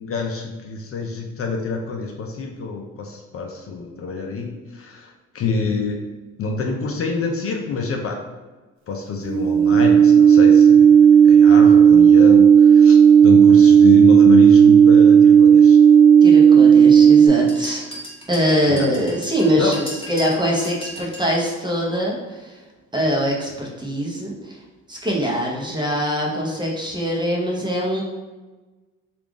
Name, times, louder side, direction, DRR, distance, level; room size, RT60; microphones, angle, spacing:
voice 1, 0.0-6.0 6.4-8.2 8.9-13.0 13.2-15.8 18.7-18.9 19.6-19.7, left 4 dB, 50° left, 2 dB, 0.5 m, -26 dB
sound 1, 9.2-17.3, right 7 dB, 65° right, 0.8 m, -10 dB
voice 2, 16.2-17.8 18.3-22.5 22.9-24.6 24.9-28.0, equal, 15° right, -2 dB, 0.9 m, -23 dB
sound 2, 17.5-21.3, right 1 dB, 20° left, 1.1 m, -37 dB
3.4 x 2.5 x 3.5 m, 1.2 s
cardioid pair, 90°, 30 cm